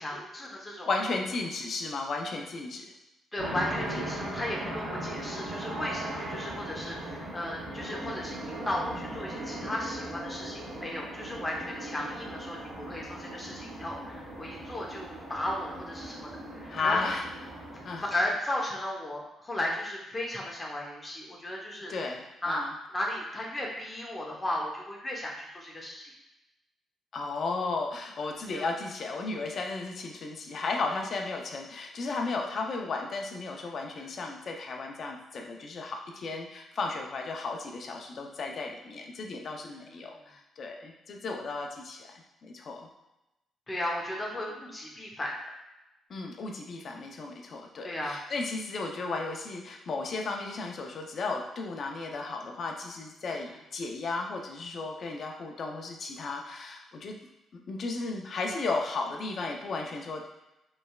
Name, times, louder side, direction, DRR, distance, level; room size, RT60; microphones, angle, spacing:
voice 1, 0.0-0.9 3.3-17.1 17.7-21.9 22.4-22.6 22.9-26.1 28.5-28.7 33.5-33.6 34.0-34.1 39.8-40.1 43.7-45.3 47.8-48.2 53.3-53.5, left 1 dB, 20° left, -2 dB, 1.0 m, -35 dB
voice 2, 0.9-2.8 16.7-17.3 17.8-18.1 21.9-22.7 27.1-42.9 46.1-57.2 57.5-60.3, left 3 dB, 50° left, 2 dB, 0.6 m, -34 dB
sound 1, 3.4-18.3, right 1 dB, 55° right, 1.1 m, -39 dB
5.1 x 3.3 x 2.4 m, 0.94 s
cardioid pair, 90°, 0 cm